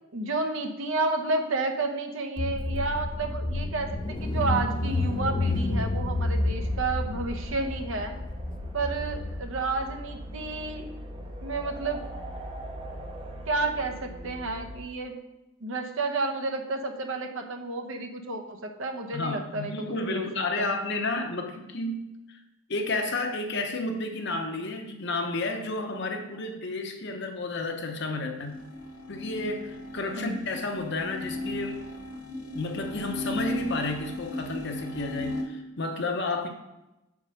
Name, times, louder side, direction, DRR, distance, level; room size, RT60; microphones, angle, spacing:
voice 1, 0.1-8.1 8.7-10.9 11.4-12.0 13.5-15.2 15.6-20.3 20.6-20.7 30.1-30.4, right 3 dB, 65° right, 4 dB, 0.9 m, -31 dB
Car / Engine, 2.4-9.4, left 2 dB, 20° left, 0.3 m, -30 dB
sound 1, 4.9-14.8, equal, 25° right, 0.7 m, -40 dB
voice 2, 19.1-22.4 22.7-28.6 29.1-31.9 32.5-36.5, left 2 dB, 50° left, 5 dB, 0.8 m, -31 dB
sound 2, 28.4-35.4, left 2 dB, 85° left, 1.5 m, -36 dB
5.3 x 4.8 x 6.2 m, 0.97 s
head